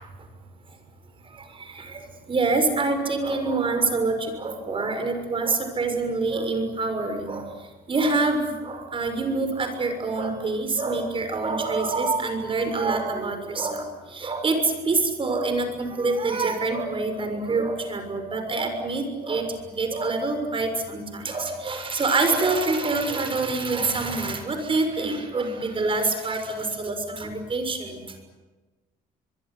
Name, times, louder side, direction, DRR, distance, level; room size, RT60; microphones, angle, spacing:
voice 1, 1.7-2.0 2.3-7.5 7.9-28.0, right 3 dB, 30° right, 7 dB, 6.6 m, -26 dB
24.5 x 23.0 x 9.6 m, 1.2 s
cardioid pair, 110°, 17 cm